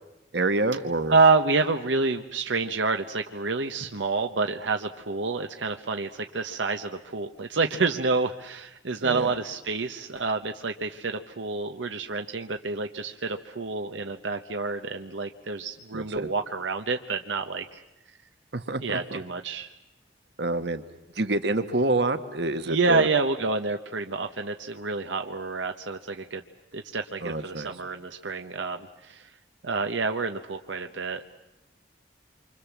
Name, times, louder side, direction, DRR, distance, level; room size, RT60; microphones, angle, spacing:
voice 1, 0.3-1.2 9.0-9.3 15.9-16.3 18.5-19.0 20.4-20.8 21.1-23.1 27.2-27.7, right 2 dB, 70° right, 9 dB, 1.4 m, -27 dB
voice 2, 1.1-17.8 18.8-19.7 22.7-26.4 26.7-29.3 29.6-31.2, right 4 dB, 90° right, 6 dB, 1.1 m, -28 dB
27.5 x 25.0 x 7.3 m, 0.97 s
head